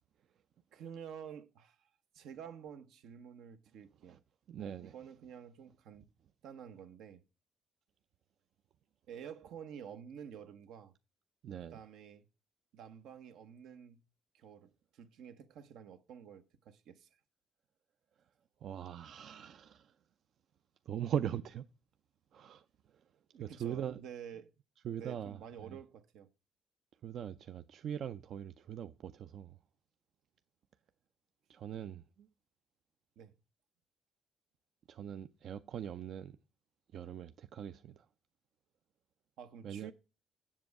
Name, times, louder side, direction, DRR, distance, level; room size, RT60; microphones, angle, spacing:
voice 1, 0.7-1.9 2.1-4.2 4.9-6.1 6.4-7.2 9.1-10.9 11.7-12.3 12.7-14.0 14.3-17.1 23.3-24.5 24.9-26.3 33.2-33.3 39.4-39.9, right 8 dB, 80° right, 0.8 m, -50 dB
voice 2, 4.5-5.0 11.4-11.8 18.6-19.9 20.9-21.6 22.3-22.6 22.9-23.0 23.4-24.0 24.8-25.8 27.0-29.6 31.5-32.3 34.9-36.4 36.9-38.1 39.6-39.9, right 9 dB, 60° right, 0.4 m, -41 dB
7.6 x 7.1 x 4.6 m
cardioid pair, 105°, 0 cm